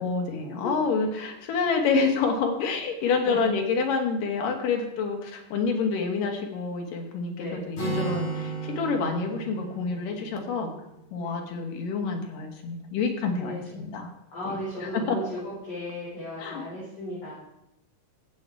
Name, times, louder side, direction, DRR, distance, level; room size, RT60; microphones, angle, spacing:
voice 1, 0.0-10.7 11.1-14.1 14.4-15.2 16.4-16.6, left 4 dB, 90° left, 3 dB, 3.3 m, -28 dB
voice 2, 3.0-3.4 7.4-7.7 11.2-11.5 13.4-13.8 14.3-17.3, equal, 30° left, -8 dB, 4.6 m, -36 dB
Acoustic guitar, 7.8-11.5, right 4 dB, 60° left, 4.6 m, -35 dB
16.0 x 7.6 x 4.6 m, 0.84 s
omnidirectional pair, 3.7 m